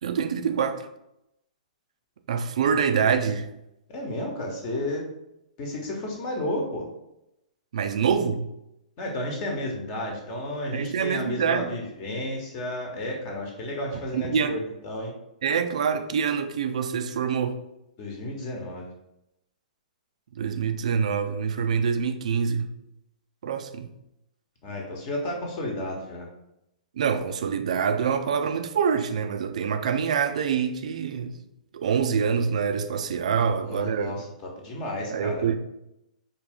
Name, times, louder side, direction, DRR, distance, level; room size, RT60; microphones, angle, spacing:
voice 1, 0.0-0.8 2.3-3.5 7.7-8.5 10.7-11.7 14.1-14.6 15.4-17.6 20.4-22.7 23.4-23.9 27.0-31.3 31.7-34.3 35.1-35.6, right 6 dB, 55° right, 0.4 m, -25 dB
voice 2, 3.9-5.0 5.6-6.9 9.0-15.1 18.0-18.9 24.6-26.3 33.3-34.2 34.6-35.4, left 1 dB, 35° left, 1.1 m, -32 dB
4.4 x 2.7 x 3.5 m
figure-of-eight pair, 110°, 4 cm